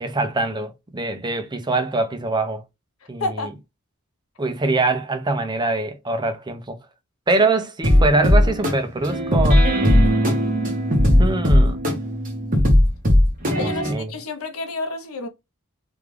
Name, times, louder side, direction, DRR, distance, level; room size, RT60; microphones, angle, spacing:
voice 1, 0.0-2.6 3.1-3.5 4.4-6.8 7.3-9.7 11.2-11.8 13.6-14.1, right 2 dB, 20° right, 0.5 m, -23 dB
voice 2, 3.2-3.5 13.6-15.3, left 2 dB, 75° left, 0.7 m, -29 dB
sound 1, 7.8-13.9, equal, 40° right, 1.2 m, -17 dB
3.6 x 2.3 x 3.2 m
head